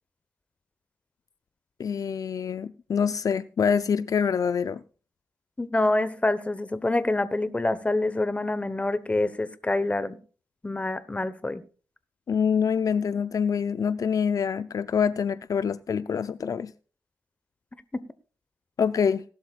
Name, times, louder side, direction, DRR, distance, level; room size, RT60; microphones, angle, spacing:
voice 1, 1.8-4.8 12.3-16.7 18.8-19.2, left 7 dB, 60° left, 0.5 m, -25 dB
voice 2, 5.6-10.2 10.6-11.6, left 2 dB, 20° left, 1.1 m, -26 dB
18.0 x 12.0 x 2.4 m
wide cardioid pair, 105°, 7 cm